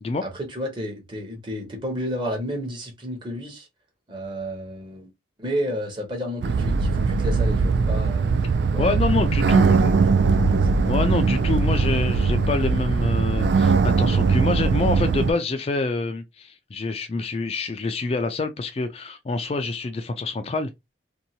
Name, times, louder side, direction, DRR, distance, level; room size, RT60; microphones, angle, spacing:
voice 1, 0.2-3.7 4.1-5.1 5.4-10.9, equal, 25° right, 0.9 m, -32 dB
sound 1, 6.4-15.3, right 4 dB, 70° right, 0.3 m, -20 dB
voice 2, 8.8-9.9 10.8-20.7, left 3 dB, 35° left, 0.3 m, -26 dB
2.7 x 2.2 x 2.7 m
head